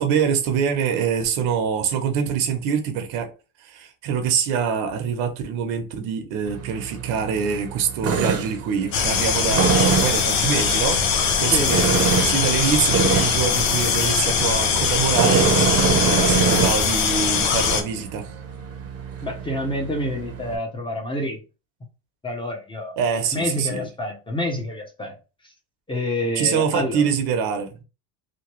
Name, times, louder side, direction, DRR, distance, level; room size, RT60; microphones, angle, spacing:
voice 1, 0.0-3.3 3.6-11.0 11.4-11.8 12.2-18.3 23.0-23.9 26.4-27.8, right 7 dB, 75° right, 0.9 m, -24 dB
Tools, 6.5-20.6, right 5 dB, 35° right, 0.7 m, -25 dB
sound 1, 8.9-17.8, left 6 dB, 75° left, 0.8 m, -21 dB
voice 2, 11.5-11.8 19.2-21.4 22.2-23.0 23.3-25.2 25.4-25.5 25.9-27.1, left 1 dB, 15° left, 0.7 m, -28 dB
2.9 x 2.2 x 3.0 m
cardioid pair, 120°, 40 cm